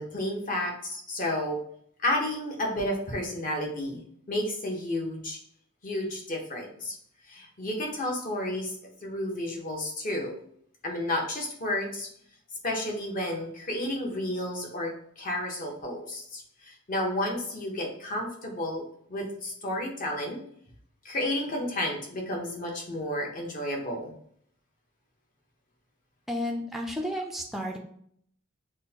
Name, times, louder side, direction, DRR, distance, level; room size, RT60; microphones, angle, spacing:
voice 1, 0.0-1.6 2.0-5.4 5.8-7.0 7.3-8.7 9.0-10.3 10.8-12.1 12.6-18.8 19.1-20.4 21.0-24.1, left 1 dB, 40° left, 0 dB, 0.9 m, -31 dB
voice 2, 26.3-27.8, left 1 dB, ahead, 1 dB, 0.4 m, -32 dB
6.0 x 2.1 x 2.8 m, 0.65 s
head